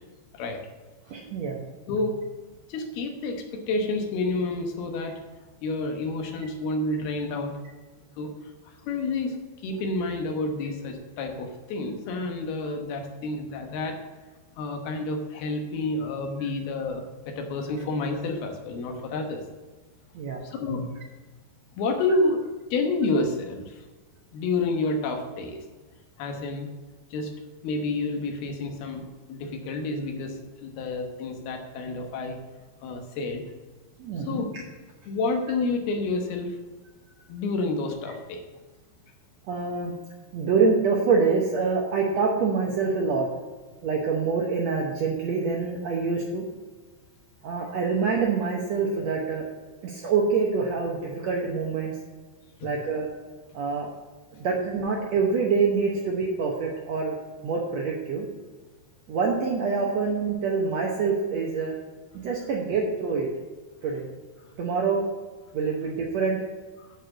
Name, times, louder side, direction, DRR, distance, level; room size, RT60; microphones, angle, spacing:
voice 1, 1.1-1.6 20.1-20.5 34.0-34.4 39.5-39.9 40.3-43.3 43.8-46.4 47.4-49.4 49.8-52.0 52.6-53.1 53.5-53.9 54.3-57.1 57.4-58.3 59.1-61.7 62.1-63.3 63.8-64.1 64.6-65.0 65.5-66.4, right 5 dB, 70° right, -1 dB, 1.6 m, -26 dB
voice 2, 1.9-2.2 2.7-5.2 5.6-7.6 8.2-8.3 8.7-14.0 14.6-19.4 20.4-20.9 21.8-22.4 22.7-23.8 24.3-25.6 26.2-26.7 27.1-27.3 27.6-32.4 32.8-33.4 34.2-34.5 35.1-36.6 37.3-38.5 52.6-52.7 66.8-66.9, left 2 dB, 90° left, 4 dB, 3.2 m, -29 dB
9.1 x 4.9 x 7.7 m, 1.3 s
omnidirectional pair, 4.3 m